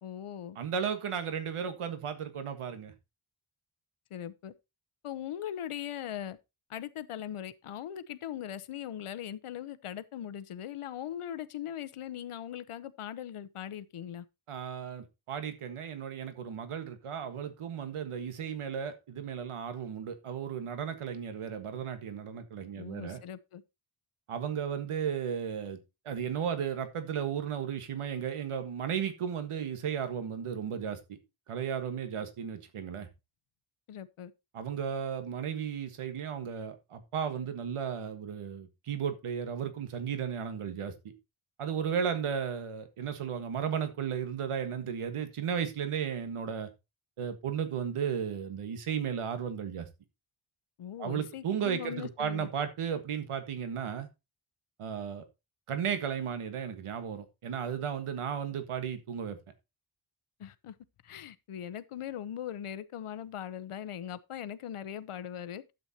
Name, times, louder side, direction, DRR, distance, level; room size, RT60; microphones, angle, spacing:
voice 1, 0.0-0.6 4.1-4.5 5.0-6.4 6.7-14.3 22.7-23.6 33.9-34.3 50.8-52.5 60.4-60.7 61.0-65.6, left 10 dB, 85° left, 1.0 m, -40 dB
voice 2, 0.5-2.9 14.5-23.2 24.3-25.8 26.0-31.2 31.5-33.1 34.5-41.1 41.6-46.7 47.2-49.9 51.0-54.1 54.8-55.2 55.7-59.4, right 7 dB, 85° right, 1.6 m, -34 dB
12.0 x 8.2 x 2.9 m
wide cardioid pair, 170°, 49 cm